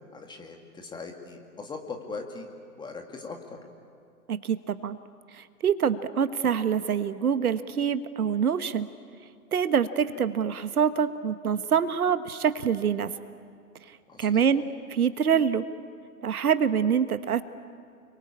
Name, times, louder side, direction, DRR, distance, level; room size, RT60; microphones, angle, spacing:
voice 1, 0.1-2.5 2.8-3.6 14.1-14.5, left 4 dB, 10° left, 3 dB, 2.2 m, -40 dB
voice 2, 4.3-5.0 5.3-8.9 9.5-13.1 14.2-15.6 16.2-17.4, right 7 dB, 70° right, 12 dB, 1.4 m, -25 dB
30.0 x 23.0 x 8.6 m, 2.4 s
hypercardioid pair, 135°, 46 cm